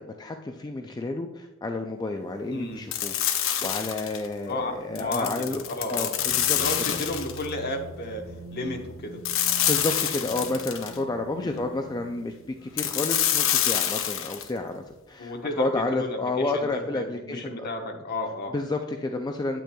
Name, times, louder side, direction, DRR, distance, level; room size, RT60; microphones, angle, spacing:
voice 1, 0.0-6.6 6.9-7.0 9.5-12.3 12.6-19.6, left 2 dB, 20° left, 4 dB, 0.3 m, -31 dB
sound 1, 2.9-4.3 5.0-7.5 9.2-11.0 12.8-14.5, left 10 dB, 65° left, 0.7 m, -26 dB
voice 2, 4.5-6.2 6.5-9.2 11.4-11.6 15.2-18.5, left 1 dB, 45° left, 2 dB, 1.1 m, -33 dB
sound 2, 6.2-13.9, right 1 dB, 55° right, 2.1 m, -44 dB
9.1 x 8.3 x 2.3 m, 1.0 s
head